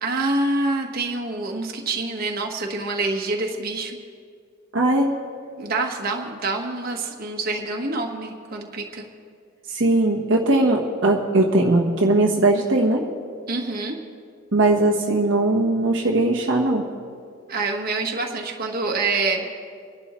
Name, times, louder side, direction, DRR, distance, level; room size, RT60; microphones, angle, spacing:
voice 1, 0.0-4.0 5.6-9.0 13.5-14.0 17.5-19.5, right 3 dB, 50° right, 1 dB, 1.4 m, -26 dB
voice 2, 4.7-5.1 9.7-13.0 14.5-16.9, right 2 dB, 65° right, -2 dB, 1.2 m, -19 dB
26.5 x 11.5 x 3.1 m, 2.2 s
head